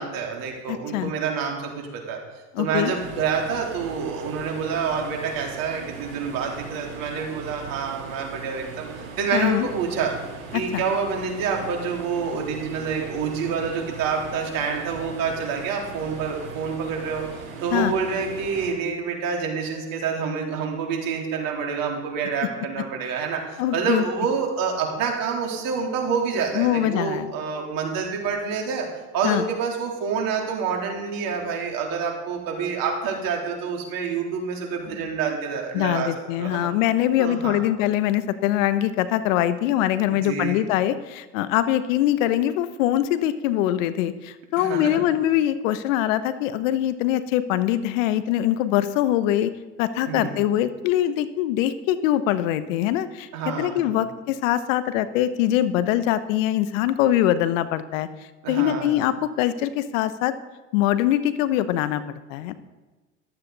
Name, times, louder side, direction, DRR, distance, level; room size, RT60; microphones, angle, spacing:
voice 1, 0.0-2.2 2.6-8.9 9.2-10.1 10.5-17.2 17.6-28.9 29.1-36.7 37.2-37.6 40.1-40.6 44.6-45.0 50.1-50.4 53.3-54.0 58.4-59.0, right 5 dB, 55° right, 0 dB, 3.6 m, -27 dB
voice 2, 0.7-1.1 2.5-2.9 9.3-9.7 10.7-10.8 17.7-17.9 23.6-24.0 26.5-27.3 29.2-29.4 35.7-49.5 49.8-53.3 53.6-58.1 58.5-60.3 60.7-62.5, left 12 dB, 70° left, 13 dB, 1.0 m, -23 dB
sound 1, 2.9-18.7, right 5 dB, 85° right, 4.1 m, -39 dB
14.0 x 12.5 x 4.0 m, 1.2 s
hypercardioid pair, 75°, 40 cm